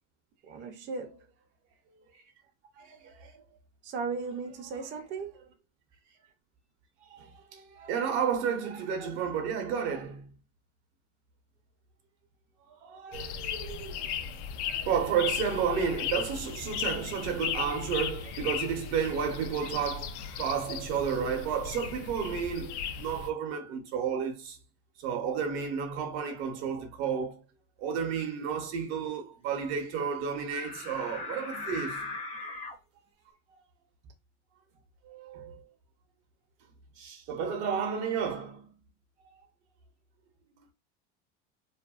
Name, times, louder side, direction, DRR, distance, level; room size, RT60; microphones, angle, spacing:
voice 1, 0.4-1.3 3.8-5.3, right 4 dB, 35° right, 0.5 m, -36 dB
voice 2, 2.8-3.4 7.1-10.3 12.7-14.1 14.7-24.6 25.0-27.4 27.8-32.1 35.0-35.6 37.0-38.7, right 7 dB, 70° right, 0.8 m, -32 dB
sound 1, 13.1-23.3, left 8 dB, 70° left, 0.5 m, -36 dB
sound 2, 30.5-32.7, left 3 dB, 20° left, 0.6 m, -38 dB
2.6 x 2.2 x 2.3 m
supercardioid pair, 100°, 35 cm